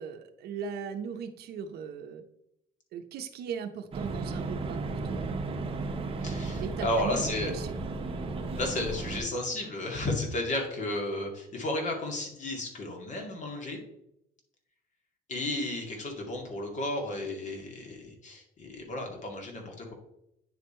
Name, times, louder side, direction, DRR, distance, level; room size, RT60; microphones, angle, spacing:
voice 1, 0.0-2.2 2.9-5.3 6.6-7.8, right 7 dB, 70° right, 6 dB, 0.7 m, -38 dB
sound 1, 3.9-9.2, right 3 dB, 35° right, 1.1 m, -34 dB
voice 2, 6.2-7.5 8.6-13.8 15.3-19.9, left 1 dB, 45° left, 1 dB, 2.2 m, -33 dB
9.3 x 3.5 x 4.3 m, 0.78 s
cardioid pair, 110°, 17 cm